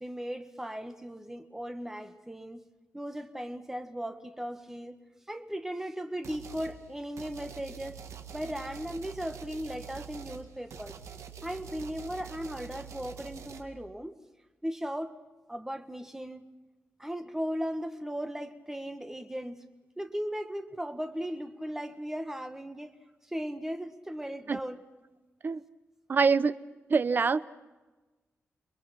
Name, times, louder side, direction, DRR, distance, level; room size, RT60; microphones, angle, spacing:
voice 1, 0.0-2.6 2.9-5.0 5.3-8.0 8.3-11.0 11.4-14.1 14.6-15.1 15.5-16.5 17.0-19.6 20.0-23.0 23.3-24.8, equal, 10° right, 1.6 m, -37 dB
sound 1, 6.2-6.8 7.2-13.6, right 7 dB, 80° right, 2.0 m, -45 dB
voice 2, 26.1-26.5 26.9-27.4, right 5 dB, 40° right, 0.7 m, -24 dB
29.5 x 22.0 x 6.0 m
wide cardioid pair, 135°, 5 cm